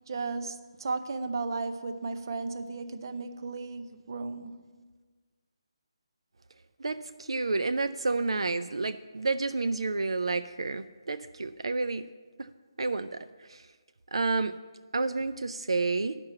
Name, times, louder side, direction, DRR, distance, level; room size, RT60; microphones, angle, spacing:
voice 1, 0.1-4.7, right 3 dB, 50° right, 10 dB, 0.6 m, -35 dB
voice 2, 6.8-12.1 12.8-13.6 14.1-14.6 14.9-16.2, right 3 dB, 85° right, 11 dB, 0.4 m, -30 dB
8.7 x 5.9 x 7.6 m, 1.4 s
hypercardioid pair, 165°, 3 cm